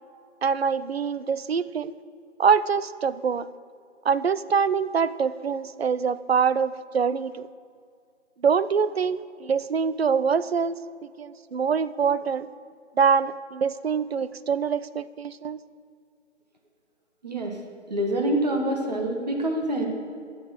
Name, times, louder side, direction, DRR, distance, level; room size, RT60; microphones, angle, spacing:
voice 1, 0.4-1.9 2.4-3.5 4.0-7.5 8.4-10.8 11.2-12.5 13.0-15.6, right 6 dB, 60° right, 16 dB, 0.5 m, -24 dB
voice 2, 17.2-17.5 17.9-19.9, right 1 dB, 35° right, 2 dB, 1.6 m, -26 dB
12.5 x 6.5 x 7.9 m, 2.3 s
figure-of-eight pair, 170°, 36 cm